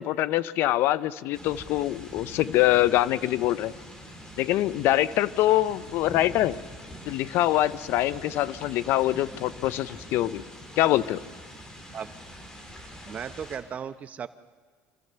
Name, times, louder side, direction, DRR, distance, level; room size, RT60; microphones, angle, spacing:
voice 1, 0.0-3.7 4.4-6.6 7.1-10.4 10.8-11.2, left 14 dB, 65° left, 17 dB, 0.6 m, -24 dB
sound 1, 1.3-13.6, equal, 15° left, 3.7 m, -44 dB
voice 2, 13.0-14.3, right 7 dB, 35° right, 12 dB, 0.8 m, -36 dB
26.5 x 15.0 x 6.8 m, 1.5 s
cardioid pair, 120°, 4 cm